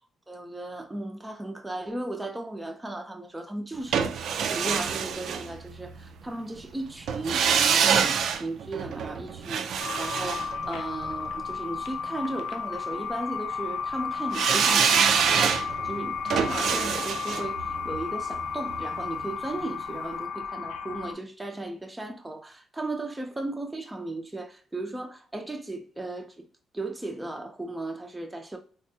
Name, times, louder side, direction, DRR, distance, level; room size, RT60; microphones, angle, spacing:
voice 1, 0.3-4.2 4.5-15.5 15.8-26.4 26.7-28.6, right 2 dB, 10° right, 0.5 m, -36 dB
sound 1, 3.9-6.0 7.1-11.3 14.3-19.3 19.6-19.7, right 7 dB, 70° right, 0.3 m, -26 dB
sound 2, 9.8-21.1, left 6 dB, 90° left, 0.4 m, -33 dB
3.5 x 2.1 x 2.6 m
cardioid pair, 90°, 0 cm